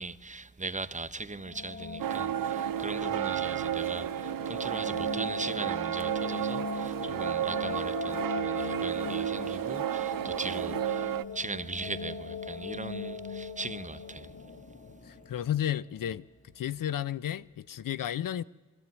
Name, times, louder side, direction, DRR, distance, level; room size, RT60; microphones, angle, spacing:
voice 1, 0.0-14.3, right 3 dB, 20° right, 0.9 m, -39 dB
sound 1, 1.2-16.1, left 3 dB, 40° left, 2.5 m, -39 dB
sound 2, 2.0-11.2, right 12 dB, 80° right, 0.6 m, -32 dB
voice 2, 15.1-16.3 16.6-18.4, left 11 dB, 75° left, 0.6 m, -32 dB
22.0 x 14.5 x 9.5 m
cardioid pair, 50°, 33 cm